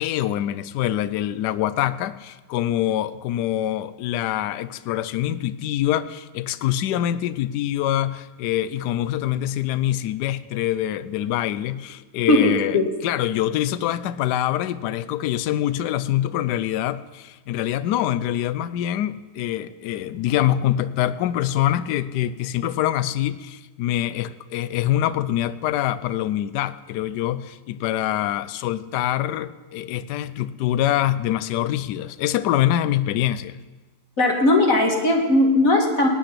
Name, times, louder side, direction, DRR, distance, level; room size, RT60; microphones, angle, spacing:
voice 1, 0.0-12.8 13.0-33.6, left 12 dB, 75° left, 15 dB, 1.2 m, -25 dB
voice 2, 12.3-12.9 34.2-36.1, left 2 dB, 50° left, 1 dB, 2.3 m, -18 dB
18.0 x 6.0 x 9.9 m, 1.2 s
omnidirectional pair, 1.9 m